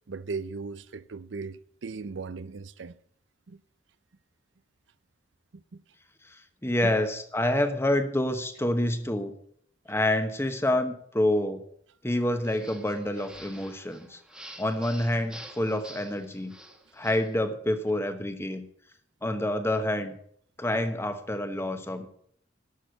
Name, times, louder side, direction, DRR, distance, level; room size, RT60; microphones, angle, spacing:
voice 1, 0.1-3.0 3.5-3.6 5.7-5.8 6.8-6.9, right 4 dB, 70° right, 0.6 m, -37 dB
voice 2, 6.2-9.3 9.9-11.6 12.0-14.2 14.6-16.5 16.9-18.6 19.2-20.1 20.6-22.1, left 1 dB, 15° left, 1.1 m, -27 dB
sound 1, 12.4-17.3, right 1 dB, 5° right, 1.3 m, -48 dB
11.5 x 6.5 x 7.8 m
head